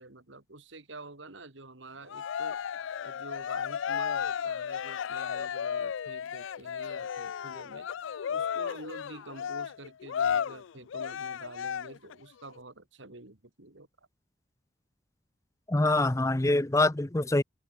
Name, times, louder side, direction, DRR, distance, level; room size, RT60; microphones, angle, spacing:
voice 1, 0.0-2.6 3.0-7.9 8.3-14.1 15.9-16.2, right 2 dB, 70° right, 2.4 m, -48 dB
Cheering, 2.1-12.1, left 8 dB, 75° left, 0.4 m, -34 dB
voice 2, 15.7-17.4, left 2 dB, 15° left, 0.6 m, -25 dB
open air
head